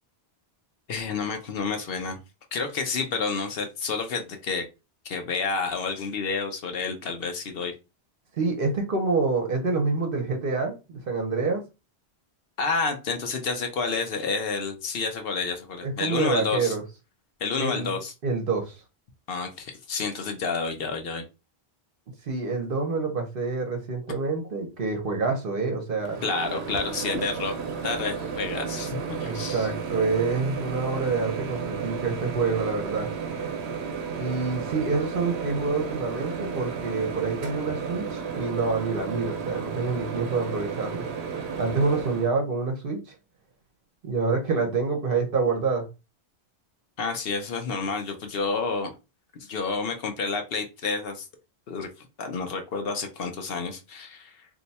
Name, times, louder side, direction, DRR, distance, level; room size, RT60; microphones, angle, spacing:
voice 1, 0.9-2.2 2.5-4.6 5.0-7.7 12.6-16.7 17.4-18.1 19.3-21.2 26.2-27.6 27.8-29.7 47.0-48.9 49.3-51.3 51.7-51.9 52.2-54.5, left 4 dB, 65° left, 0.9 m, -29 dB
voice 2, 8.4-11.6 15.8-16.8 17.6-18.8 22.3-26.2 29.2-33.1 34.2-41.1 41.6-43.0 44.0-45.9, right 4 dB, 60° right, 1.0 m, -27 dB
Microwave oven, 26.0-42.3, right 6 dB, 90° right, 0.9 m, -33 dB
2.7 x 2.2 x 4.0 m
omnidirectional pair, 1.1 m